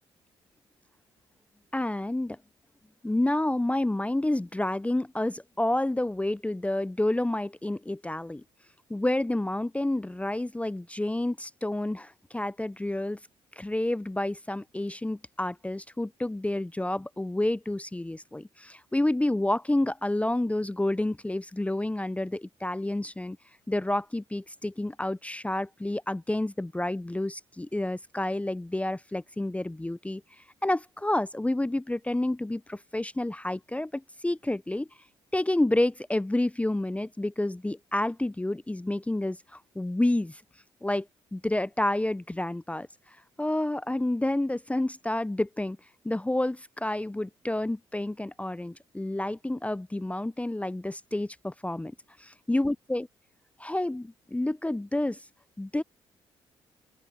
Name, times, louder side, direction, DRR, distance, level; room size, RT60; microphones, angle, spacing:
voice 1, 1.7-2.4 3.0-8.4 8.9-13.2 13.6-23.4 23.7-30.2 30.6-34.9 35.3-40.4 40.8-41.1 41.3-42.9 43.4-45.8 46.0-51.9 52.5-53.1 53.6-55.2 55.6-55.8, left 1 dB, 10° left, 0.8 m, -29 dB
open air
figure-of-eight pair, 40°, 13 cm